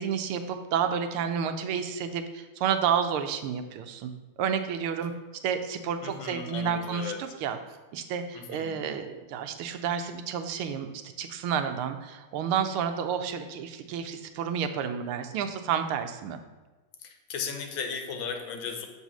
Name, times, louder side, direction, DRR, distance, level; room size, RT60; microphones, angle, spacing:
voice 1, 0.0-4.1 4.4-5.1 5.4-7.6 7.9-10.9 11.2-16.4, right 7 dB, 90° right, 8 dB, 1.5 m, -30 dB
voice 2, 6.0-7.3 8.3-8.8 17.0-18.9, left 6 dB, 70° left, 5 dB, 1.5 m, -36 dB
6.4 x 4.1 x 6.0 m, 1.2 s
omnidirectional pair, 2.3 m